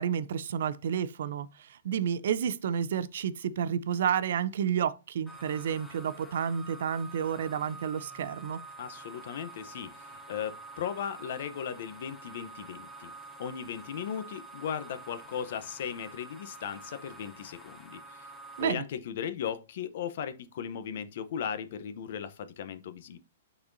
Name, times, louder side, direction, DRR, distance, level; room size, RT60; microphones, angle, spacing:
voice 1, 0.0-8.6 18.6-18.8, right 8 dB, 65° right, 0.5 m, -30 dB
sound 1, 5.3-18.6, right 2 dB, ahead, 0.8 m, -48 dB
voice 2, 8.8-13.1 13.4-18.3 18.6-23.2, left 8 dB, 55° left, 0.7 m, -37 dB
8.7 x 4.1 x 2.6 m
hypercardioid pair, 155°, 0 cm